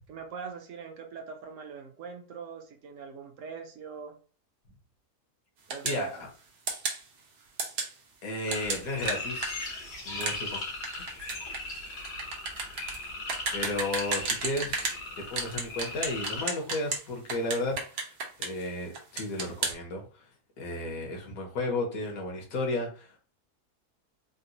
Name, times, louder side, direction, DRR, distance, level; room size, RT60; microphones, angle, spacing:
voice 1, 0.1-4.2 5.7-6.1, right 6 dB, 65° right, 4 dB, 0.9 m, -42 dB
sound 1, 5.7-6.0 6.7-7.0 7.6-7.9 8.5-15.0 15.4-17.0 17.3-18.7 18.9-19.7, right 4 dB, 85° right, 1.4 m, -32 dB
voice 2, 5.8-6.3 8.2-9.7 10.0-10.6 13.5-18.1 18.4-20.3 20.6-23.1, left 2 dB, 65° left, 1 dB, 1.3 m, -33 dB
sound 2, 8.5-16.4, left 2 dB, 80° left, 1.7 m, -38 dB
3.9 x 2.0 x 2.6 m, 0.38 s
omnidirectional pair, 1.7 m